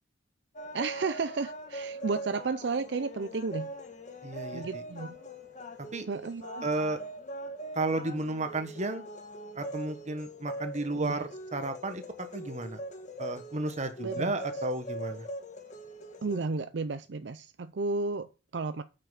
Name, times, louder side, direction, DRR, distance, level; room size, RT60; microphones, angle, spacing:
sound 1, 0.6-16.4, right 1 dB, 45° left, 1.5 m, -42 dB
voice 1, 0.7-3.7 4.5-5.2 6.1-6.7 10.9-11.3 14.0-14.4 16.2-18.8, right 4 dB, 70° right, 0.5 m, -33 dB
voice 2, 4.2-4.8 5.9-6.1 6.6-7.0 7.7-9.0 9.5-12.0 12.3-12.8 13.2-15.3, right 2 dB, 40° right, 1.4 m, -33 dB
8.7 x 5.8 x 5.8 m
head